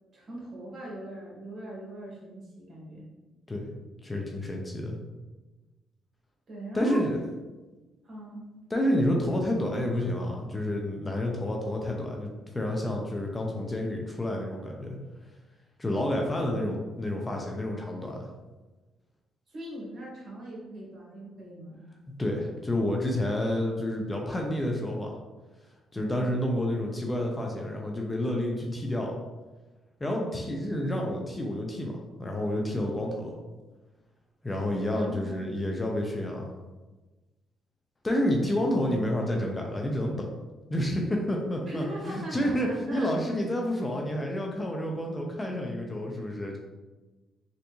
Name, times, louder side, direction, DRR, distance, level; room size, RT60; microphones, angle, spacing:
voice 1, 0.1-3.1 6.5-7.0 8.0-8.5 19.5-21.8 25.9-26.4 34.9-35.4 41.7-43.2, right 1 dB, 45° right, -4 dB, 1.4 m, -40 dB
voice 2, 4.0-5.0 6.7-7.2 8.7-15.0 15.8-18.3 22.2-25.2 25.9-29.2 30.0-33.4 34.4-36.5 38.0-40.3 40.7-46.6, left 1 dB, 20° left, 0 dB, 0.5 m, -29 dB
3.4 x 2.5 x 2.9 m, 1.2 s
cardioid pair, 90°, 0 cm